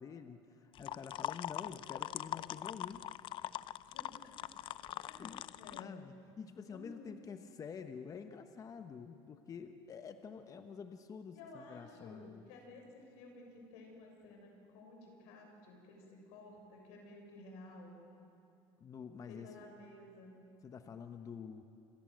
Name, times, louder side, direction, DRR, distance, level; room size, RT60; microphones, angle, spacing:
voice 1, 0.0-3.1 5.2-12.5 18.8-19.5 20.6-21.6, left 6 dB, 30° left, 8 dB, 1.2 m, -48 dB
sound 1, 0.7-5.8, left 13 dB, 50° left, 0.6 m, -42 dB
voice 2, 3.9-4.3 5.1-6.0 6.7-7.3 11.3-18.0 19.3-20.4, left 2 dB, 85° left, 2 dB, 6.7 m, -54 dB
28.5 x 25.0 x 7.8 m, 2.7 s
cardioid pair, 125°, 11 cm